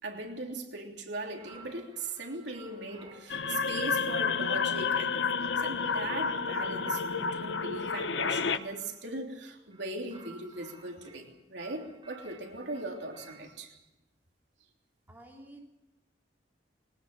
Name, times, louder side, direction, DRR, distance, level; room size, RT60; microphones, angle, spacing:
voice 1, 0.0-13.7, right 2 dB, 75° right, 2 dB, 3.3 m, -39 dB
sound 1, 1.3-3.4 3.9-9.0 9.6-11.2 11.6-13.5, right 3 dB, 30° right, 4.6 m, -54 dB
sound 2, 3.3-8.6, left 5 dB, 90° left, 1.0 m, -30 dB
voice 2, 15.1-15.7, right 1 dB, 10° right, -1 dB, 3.4 m, -50 dB
21.0 x 19.0 x 6.9 m, 1.0 s
head